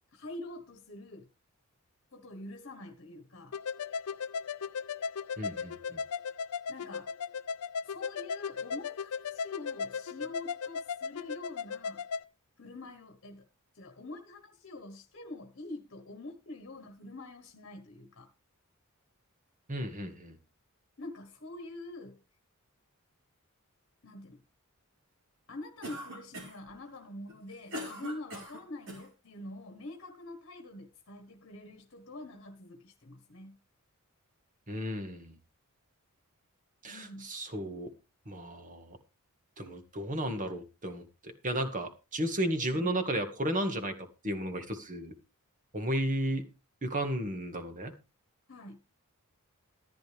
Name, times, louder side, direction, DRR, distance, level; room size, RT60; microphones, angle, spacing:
voice 1, 0.1-1.3 2.1-3.6 6.7-7.1 7.8-12.0 12.6-13.5 13.7-18.3 21.0-22.2 24.0-24.4 25.5-33.6 36.9-37.3 48.5-48.8, left 2 dB, 55° left, 1.4 m, -45 dB
sound 1, 3.5-12.2, left 6 dB, 85° left, 0.5 m, -37 dB
voice 2, 5.4-6.0 19.7-20.4 34.7-35.4 36.8-37.9 38.2-39.0 39.6-43.9 44.2-45.1 45.7-46.4 46.8-47.9, right 1 dB, 35° right, 1.8 m, -34 dB
Cough, 25.8-26.7 27.3-29.1, equal, 60° right, 4.5 m, -42 dB
14.0 x 10.5 x 3.5 m
head